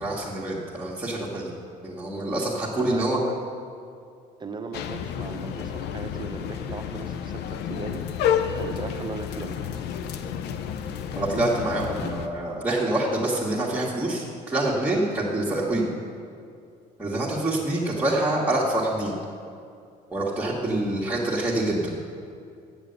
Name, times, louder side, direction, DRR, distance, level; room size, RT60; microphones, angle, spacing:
voice 1, 0.0-1.5 1.8-3.2 11.1-15.9 17.0-19.1 20.1-22.0, right 1 dB, 10° right, -9 dB, 1.6 m, -26 dB
voice 2, 2.8-3.3 4.4-8.1 8.5-9.6 17.1-17.4, right 4 dB, 25° right, 6 dB, 0.8 m, -37 dB
sound 1, 4.7-12.3, left 8 dB, 80° left, 0.6 m, -30 dB
7.8 x 7.2 x 8.0 m, 2.4 s
cardioid pair, 110°, 17 cm